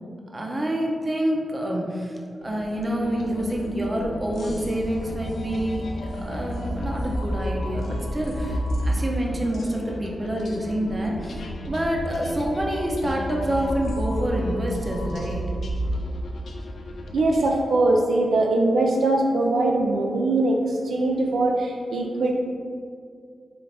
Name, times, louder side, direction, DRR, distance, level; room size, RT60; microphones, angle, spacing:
voice 1, 0.3-2.2 2.4-5.9 6.2-15.4, equal, 30° right, -1 dB, 0.6 m, -27 dB
sound 1, 2.4-17.5, equal, 75° left, 0.4 m, -31 dB
voice 2, 17.1-22.3, right 2 dB, 85° right, 1 dB, 0.4 m, -21 dB
3.8 x 3.4 x 3.3 m, 2.3 s
wide cardioid pair, 100°, 0 cm